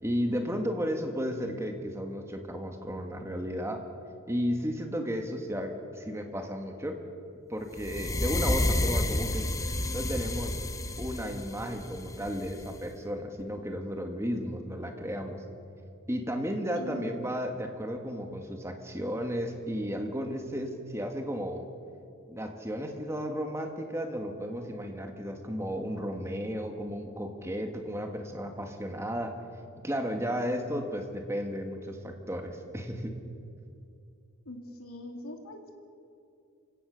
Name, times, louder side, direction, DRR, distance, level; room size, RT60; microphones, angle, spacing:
voice 1, 0.0-3.8 4.3-7.0 7.5-9.5 9.9-10.6 11.0-15.4 16.1-21.6 22.3-29.3 29.8-33.1, equal, 10° right, 4 dB, 1.8 m, -33 dB
sound 1, 7.8-12.8, left 1 dB, 15° left, 0.8 m, -30 dB
voice 2, 16.8-17.1 34.4-35.7, left 1 dB, 90° left, 3 dB, 2.8 m, -42 dB
27.5 x 16.5 x 6.5 m, 2.5 s
head